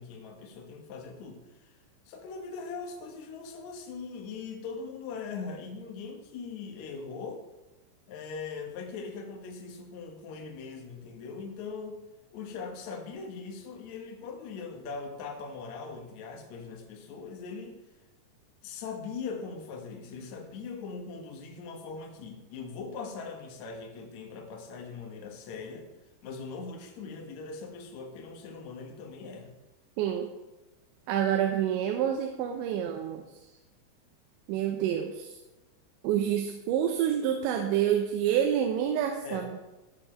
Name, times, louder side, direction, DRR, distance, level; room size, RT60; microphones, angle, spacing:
voice 1, 0.0-1.7 2.1-7.4 8.1-12.0 12.3-17.8 18.6-25.9 26.2-29.5 39.2-39.5, left 4 dB, 65° left, 2 dB, 1.9 m, -40 dB
voice 2, 30.0-30.3 31.1-33.2 34.5-35.4 36.0-39.6, right 10 dB, 90° right, 4 dB, 3.1 m, -28 dB
13.5 x 7.1 x 4.5 m, 1.1 s
omnidirectional pair, 5.1 m